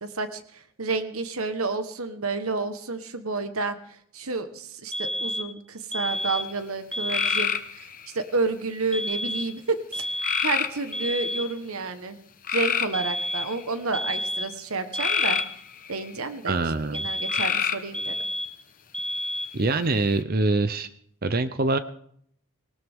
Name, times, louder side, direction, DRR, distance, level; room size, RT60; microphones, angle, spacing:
voice 1, 0.0-12.2 12.5-15.4 15.9-18.3, right 3 dB, 75° right, 9 dB, 1.3 m, -30 dB
sound 1, 4.9-5.6 5.9-6.6 6.9-7.6 8.9-9.6 9.9-10.6 10.9-11.6 12.9-13.6 13.9-14.6 14.9-15.6 16.9-17.6 17.9-18.6 18.9-19.6, equal, 5° left, 0.5 m, -30 dB
sound 2, 7.1-8.1 10.2-11.0 12.4-13.7 15.0-16.1 17.3-18.0 19.6-20.2, left 7 dB, 40° left, 1.1 m, -27 dB
voice 2, 16.5-17.1 19.5-20.9 21.2-21.8, right 3 dB, 40° right, 12 dB, 0.7 m, -24 dB
20.5 x 19.0 x 3.7 m, 0.66 s
head